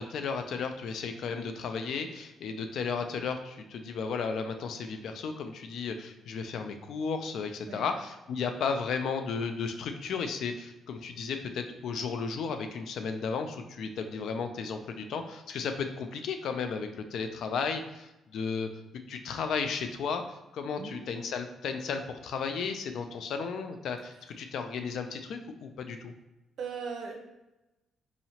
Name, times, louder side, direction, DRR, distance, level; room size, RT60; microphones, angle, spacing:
voice 1, 0.0-18.7 19.1-26.1, left 5 dB, 70° left, 7 dB, 0.4 m, -34 dB
voice 2, 26.6-27.1, right 5 dB, 65° right, 3 dB, 0.7 m, -38 dB
4.0 x 2.8 x 2.8 m, 0.96 s
cardioid pair, 90°, 0 cm